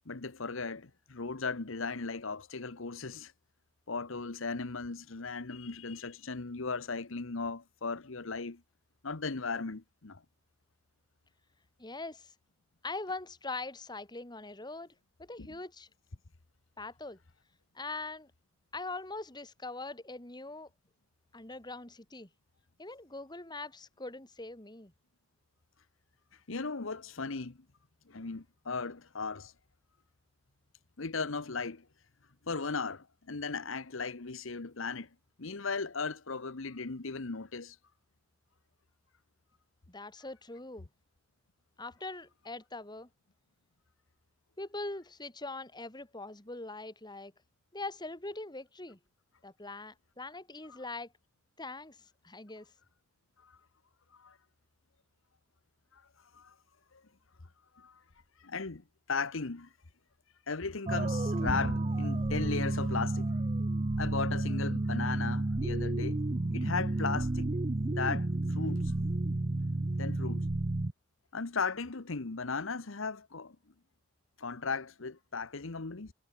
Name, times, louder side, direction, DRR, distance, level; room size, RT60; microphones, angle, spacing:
voice 1, 0.1-3.3 3.9-8.6 9.0-10.2 15.4-15.5 26.5-27.6 28.1-29.5 31.0-31.9 32.5-35.1 35.4-37.8 50.7-50.8 53.4-53.6 54.1-54.4 55.9-56.0 56.3-56.5 56.9-57.0 57.7-58.0 58.4-59.7 60.5-63.3 64.0-66.2 66.5-67.5 67.8-68.9 70.0-70.5 71.3-73.6 74.4-76.1, left 4 dB, 70° left, 1.1 m, -37 dB
voice 2, 11.8-12.3 12.8-14.9 15.2-15.9 16.8-17.2 17.7-18.3 18.7-20.7 21.3-22.3 22.8-24.9 39.9-40.9 41.8-43.1 44.6-47.3 47.7-49.0 49.4-51.1 51.6-52.7, left 2 dB, 20° left, 2.5 m, -42 dB
sound 1, 60.9-70.9, right 2 dB, 30° right, 0.6 m, -31 dB
head